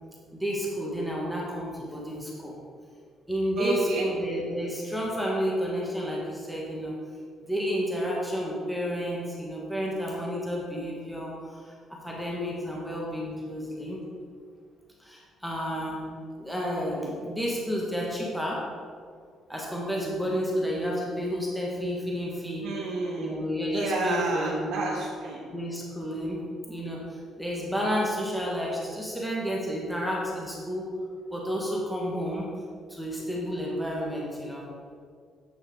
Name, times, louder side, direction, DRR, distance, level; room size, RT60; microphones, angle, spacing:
voice 1, 0.3-2.5 3.3-6.9 7.4-14.0 15.0-16.1 16.4-18.6 19.5-22.7 23.1-24.8 25.5-26.4 26.7-30.9 31.3-32.5 32.9-34.7, equal, ahead, -4 dB, 1.4 m, -31 dB
voice 2, 3.6-4.0 22.6-23.3 23.7-25.4, right 3 dB, 80° right, -4 dB, 1.3 m, -30 dB
8.6 x 6.9 x 3.7 m, 2.1 s
cardioid pair, 115°, 0 cm